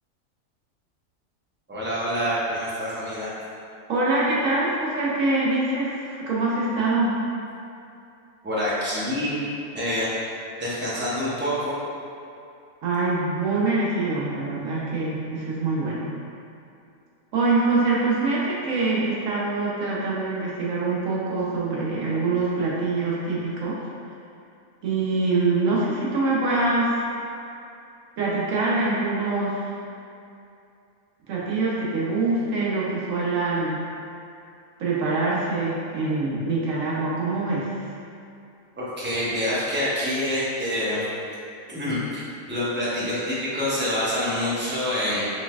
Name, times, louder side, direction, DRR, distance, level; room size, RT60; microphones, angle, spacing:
voice 1, 1.7-3.3 8.4-9.4 9.7-10.1 10.6-11.7 38.8-41.0 41.7-42.2 42.5-45.2, left 1 dB, 10° right, -9 dB, 0.6 m, -26 dB
voice 2, 3.9-7.2 12.8-16.1 17.3-23.8 24.8-27.0 28.2-29.6 31.3-33.8 34.8-37.7, right 3 dB, 70° right, -6 dB, 1.2 m, -24 dB
4.3 x 3.3 x 2.3 m, 2.6 s
omnidirectional pair, 1.4 m